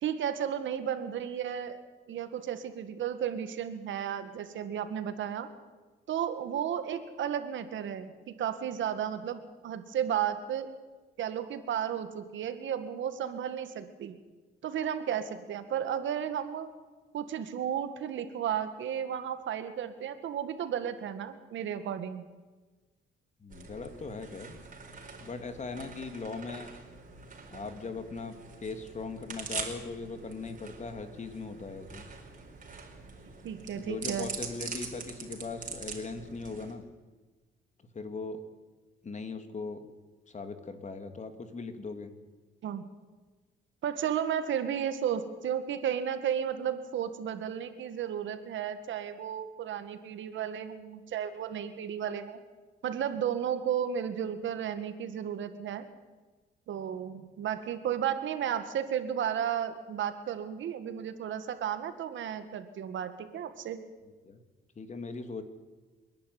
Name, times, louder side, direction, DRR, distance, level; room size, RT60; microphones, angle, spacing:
voice 1, 0.0-1.8 2.1-5.5 6.1-10.7 11.2-14.2 14.6-16.7 17.1-22.2 33.4-34.3 42.6-42.8 43.8-52.4 52.8-55.8 56.7-63.8, right 9 dB, 75° right, 10 dB, 1.9 m, -33 dB
voice 2, 23.4-24.6 25.2-26.7 27.5-28.3 28.6-32.0 33.7-36.8 37.9-38.4 39.0-39.8 40.3-42.1 64.2-64.4 64.8-65.4, left 4 dB, 35° left, 8 dB, 2.5 m, -39 dB
sound 1, 23.5-36.7, right 4 dB, 40° right, 4.6 m, -44 dB
27.5 x 11.0 x 9.6 m, 1.3 s
cardioid pair, 90°, 20 cm